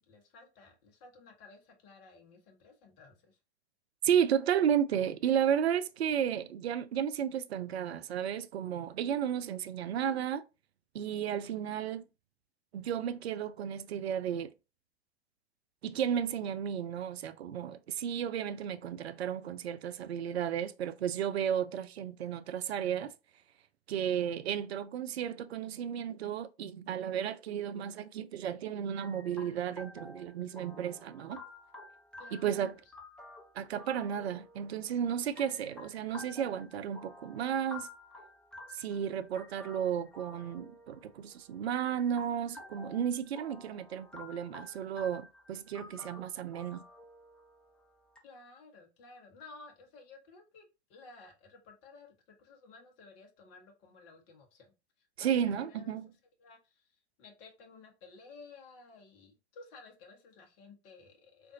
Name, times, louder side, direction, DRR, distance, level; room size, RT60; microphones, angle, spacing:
voice 1, 0.1-3.4 24.0-24.1 32.2-32.7 48.2-52.1 52.4-54.7 55.0-56.0 56.4-56.9 57.2-61.5, left 3 dB, 40° left, 1.0 m, -55 dB
voice 2, 4.0-10.4 10.9-12.0 12.7-14.5 15.8-23.1 23.9-31.4 32.3-32.7 33.6-37.9 38.7-46.8 55.2-56.1, right 9 dB, 75° right, 0.5 m, -33 dB
sound 1, 29.0-48.2, left 2 dB, 5° left, 0.5 m, -52 dB
3.6 x 2.6 x 2.5 m
figure-of-eight pair, 95°, 33 cm